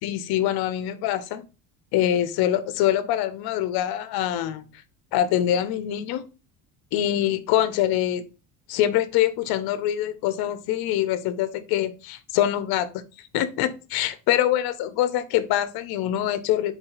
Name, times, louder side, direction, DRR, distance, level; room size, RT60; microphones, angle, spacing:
voice 1, 0.0-1.4 1.9-4.7 5.1-6.2 6.9-8.2 8.7-16.7, left 12 dB, 65° left, 12 dB, 0.7 m, -24 dB
4.8 x 2.7 x 3.9 m, 0.31 s
cardioid pair, 115°, 41 cm